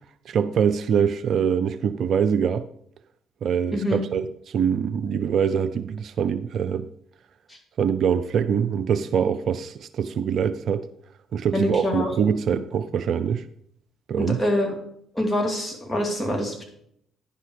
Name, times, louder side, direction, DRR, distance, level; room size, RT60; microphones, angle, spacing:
voice 1, 0.3-2.6 3.4-6.9 7.8-10.9 11.3-13.5 14.1-14.4, right 7 dB, 60° right, 0.4 m, -24 dB
voice 2, 3.7-4.0 11.5-12.1 14.2-14.7 15.1-16.6, left 1 dB, 15° left, 3.0 m, -25 dB
10.0 x 5.6 x 4.8 m
hypercardioid pair, 50°, 0 cm